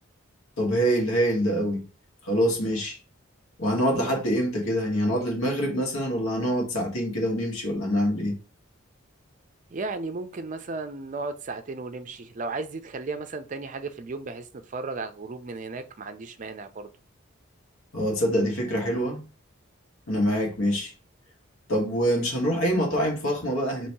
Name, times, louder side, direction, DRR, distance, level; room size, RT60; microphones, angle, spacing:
voice 1, 0.6-1.8 2.2-3.0 3.6-8.3 17.9-19.3 20.1-20.9 21.7-23.9, equal, 85° left, 1.5 m, -25 dB
voice 2, 9.7-16.9, right 3 dB, 40° right, 0.4 m, -35 dB
3.0 x 2.7 x 4.5 m
head